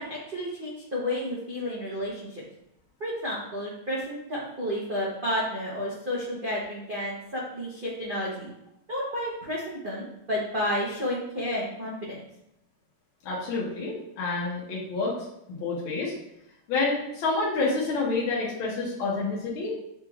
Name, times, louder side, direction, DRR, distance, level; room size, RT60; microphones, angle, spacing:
voice 1, 0.0-2.4 3.0-8.5 8.9-12.2, equal, 85° right, -6 dB, 0.4 m, -31 dB
voice 2, 13.2-15.2 15.5-16.1 16.7-19.7, left 3 dB, 70° left, -4 dB, 1.7 m, -28 dB
7.2 x 3.1 x 2.3 m, 0.83 s
omnidirectional pair, 2.4 m